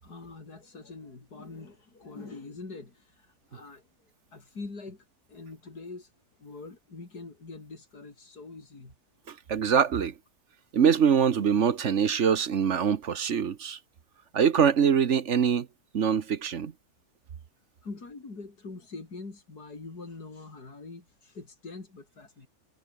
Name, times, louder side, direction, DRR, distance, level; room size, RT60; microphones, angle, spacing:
voice 1, 0.0-3.9 4.3-6.1 6.4-9.0 17.8-22.5, left 3 dB, 85° left, 4.5 m, -44 dB
voice 2, 9.3-10.1 10.7-13.8 14.3-15.7 15.9-16.7, right 7 dB, 50° right, 1.3 m, -24 dB
omnidirectional pair, 1.6 m